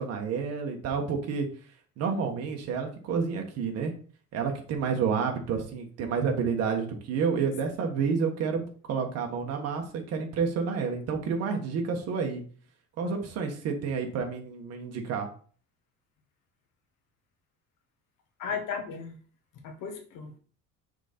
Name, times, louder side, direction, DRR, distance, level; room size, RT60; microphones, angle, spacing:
voice 1, 0.0-1.5 2.0-3.9 4.3-12.4 13.0-15.3, right 5 dB, 45° right, 3 dB, 1.4 m, -29 dB
voice 2, 18.4-19.2 19.6-20.4, left 6 dB, 65° left, 4 dB, 1.3 m, -35 dB
6.1 x 3.8 x 4.3 m, 0.43 s
cardioid pair, 165°, 33 cm